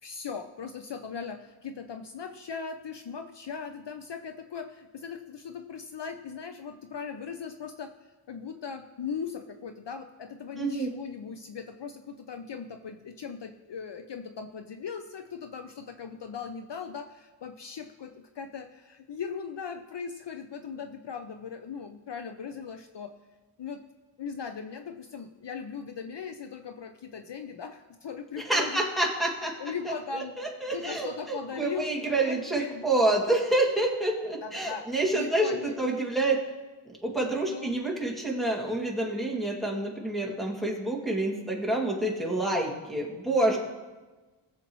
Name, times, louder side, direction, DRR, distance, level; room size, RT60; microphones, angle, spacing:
voice 1, 0.0-7.9 8.3-23.1 23.6-23.8 24.2-28.8 29.6-30.4 30.7-32.9 34.4-34.9 35.1-35.8 37.5-37.7, left 6 dB, 55° left, 6 dB, 0.7 m, -39 dB
voice 2, 10.6-10.9 28.5-29.5 30.1-36.4 37.0-43.6, right 2 dB, ahead, -2 dB, 2.3 m, -28 dB
20.0 x 7.4 x 3.1 m, 1.2 s
wide cardioid pair, 100°, 50 cm